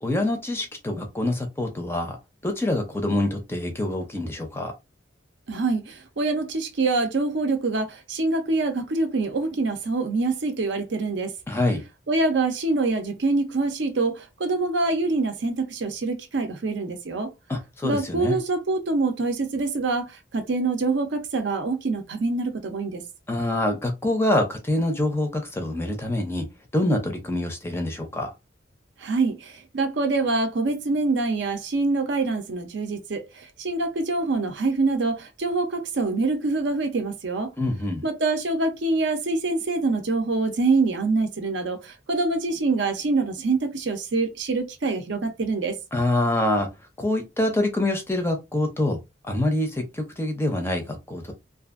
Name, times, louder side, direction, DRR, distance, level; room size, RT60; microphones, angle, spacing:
voice 1, 0.0-2.2 2.4-4.7 11.5-11.8 17.5-18.4 23.3-26.5 26.7-28.3 37.6-38.0 45.9-46.7 47.0-49.0 49.3-51.3, left 1 dB, 10° left, 0.5 m, -25 dB
voice 2, 5.5-11.3 12.1-17.3 17.8-23.0 29.0-37.5 38.0-45.8, right 3 dB, 65° right, 0.6 m, -25 dB
2.6 x 2.4 x 2.4 m
head